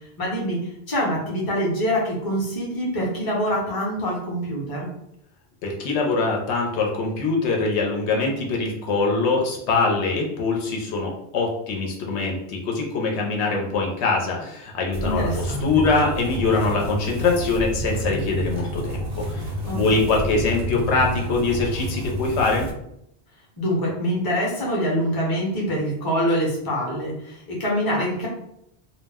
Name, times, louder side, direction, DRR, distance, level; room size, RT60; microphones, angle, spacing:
voice 1, 0.2-0.6 0.9-4.9 15.0-15.7 19.7-19.8 23.6-28.3, equal, 25° left, -4 dB, 0.6 m, -25 dB
voice 2, 5.6-22.7, left 3 dB, 80° left, 0 dB, 0.9 m, -23 dB
sound 1, 14.9-22.7, right 1 dB, 65° right, 0.7 m, -29 dB
2.3 x 2.0 x 3.4 m, 0.77 s
omnidirectional pair, 1.1 m